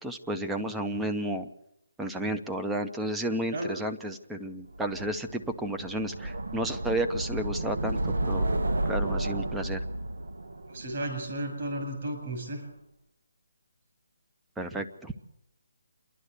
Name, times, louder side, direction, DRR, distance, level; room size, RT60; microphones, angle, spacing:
voice 1, 0.0-1.5 2.0-8.5 8.9-9.8 14.6-15.1, right 1 dB, 5° right, 6 dB, 0.7 m, -32 dB
sound 1, 4.8-11.8, right 1 dB, 75° right, 1.3 m, -32 dB
voice 2, 10.7-12.6, right 1 dB, 40° right, 3 dB, 7.0 m, -33 dB
27.5 x 11.5 x 8.2 m, 0.80 s
hypercardioid pair, 170°, 0 cm